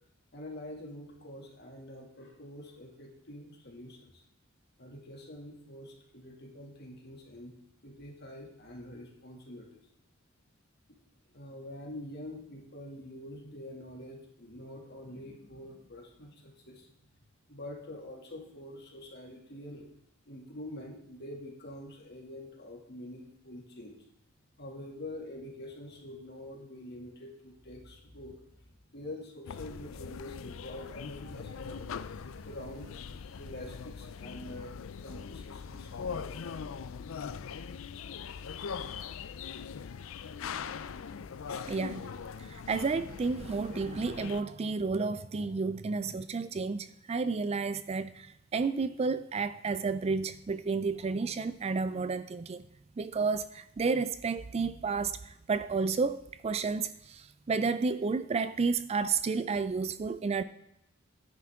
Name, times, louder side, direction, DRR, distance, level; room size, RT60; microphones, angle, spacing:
voice 1, 0.3-4.2 4.8-7.5 7.8-9.7 11.3-16.9 17.5-19.9 20.3-24.0 24.6-34.7 35.0-36.5, left 1 dB, 55° left, 2.3 m, -46 dB
sound 1, 29.5-44.4, left 6 dB, 70° left, 0.4 m, -41 dB
voice 2, 41.6-52.6 53.0-60.4, right 4 dB, 30° right, 0.4 m, -31 dB
10.0 x 9.6 x 3.6 m
head